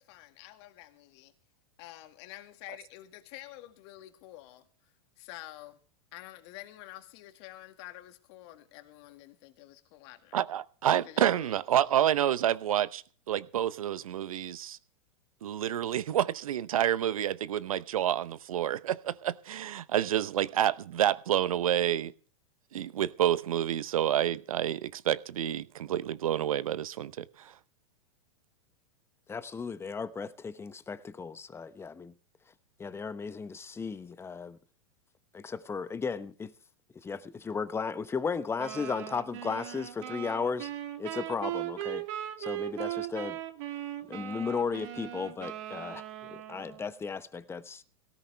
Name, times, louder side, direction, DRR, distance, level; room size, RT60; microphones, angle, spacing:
voice 1, 0.0-1.3 1.8-4.7 5.2-5.8 6.1-10.4 11.0-11.6, left 15 dB, 50° left, 2.0 m, -48 dB
voice 2, 10.3-14.8 15.4-22.1 22.7-27.5, right 11 dB, 75° right, 0.8 m, -29 dB
voice 3, 29.3-32.1 32.8-34.6 35.3-36.5 36.9-40.7 41.0-42.0 42.4-43.4 44.1-47.8, left 5 dB, 15° left, 0.9 m, -35 dB
sound 1, 38.6-46.9, right 13 dB, 55° right, 2.0 m, -38 dB
17.5 x 15.0 x 3.4 m
hypercardioid pair, 110°, 18 cm